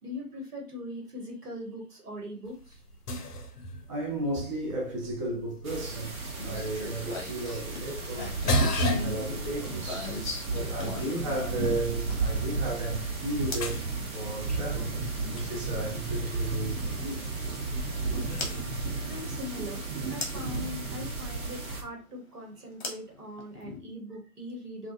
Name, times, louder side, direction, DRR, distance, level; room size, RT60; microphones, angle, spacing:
voice 1, 0.0-2.8 18.3-24.9, left 1 dB, 85° right, 1.1 m, -41 dB
sound 1, 2.5-19.5, equal, 85° left, 0.6 m, -37 dB
voice 2, 3.9-8.4 8.8-13.8 14.1-14.9 15.3-17.3, right 1 dB, 25° right, 0.4 m, -34 dB
sound 2, 5.6-21.8, right 3 dB, 65° right, 0.9 m, -34 dB
sound 3, 6.4-12.4 13.5-13.8 15.7-15.8 18.4-18.5 20.2-20.6 22.8-23.8, left 3 dB, 40° left, 0.8 m, -37 dB
2.3 x 2.2 x 2.4 m
figure-of-eight pair, 120°, 45 cm